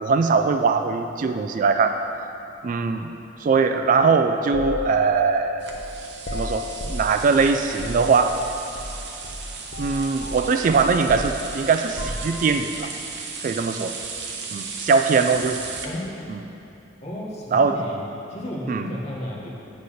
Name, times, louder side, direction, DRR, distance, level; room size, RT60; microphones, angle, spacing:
voice 1, 0.0-2.0 2.6-3.1 3.4-5.7 6.3-8.4 9.8-12.9 13.4-13.9 14.5-15.6 16.3-16.4 17.5-17.8 18.7-18.9, right 5 dB, 45° right, 7 dB, 0.3 m, -21 dB
sound 1, 4.5-9.0 9.2-9.4 9.7-12.7, left 1 dB, 65° left, 0.9 m, -33 dB
sound 2, 5.6-15.9, right 5 dB, 65° right, 0.8 m, -36 dB
voice 2, 15.8-16.3 17.0-19.5, left 1 dB, 35° left, -4 dB, 1.4 m, -33 dB
8.2 x 4.1 x 6.4 m, 2.9 s
head